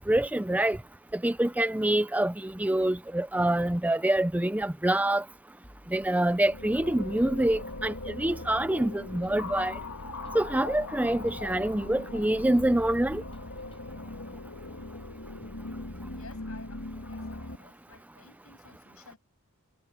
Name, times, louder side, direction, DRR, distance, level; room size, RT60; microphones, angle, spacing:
voice 1, 0.1-0.8 1.1-5.2 5.9-9.8 10.3-13.2, right 1 dB, 5° right, 0.5 m, -26 dB
sound 1, 5.6-13.8, equal, 25° left, 5.4 m, -54 dB
sound 2, 6.0-17.6, left 2 dB, 90° left, 2.5 m, -40 dB
voice 2, 16.1-19.2, left 3 dB, 70° left, 7.1 m, -53 dB
head